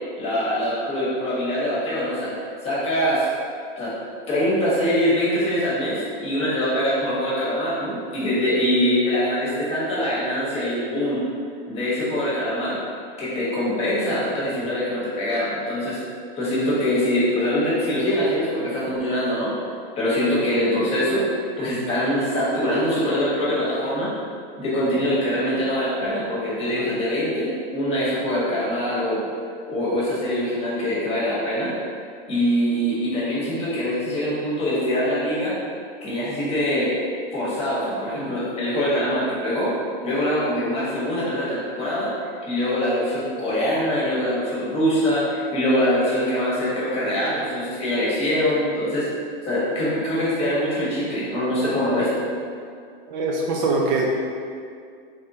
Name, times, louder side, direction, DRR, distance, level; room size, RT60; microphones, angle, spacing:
voice 1, 0.2-2.3 2.6-3.3 3.8-3.9 4.3-11.2 11.7-12.8 13.2-16.0 16.4-19.5 19.9-21.2 21.6-24.1 24.6-29.2 29.7-31.7 32.3-35.6 36.0-36.9 37.3-39.7 40.0-49.1 49.4-52.3, equal, 20° left, -8 dB, 1.2 m, -23 dB
voice 2, 53.1-54.1, right 3 dB, 50° right, -1 dB, 0.5 m, -22 dB
3.5 x 3.4 x 2.7 m, 2.2 s
supercardioid pair, 140°, 30 cm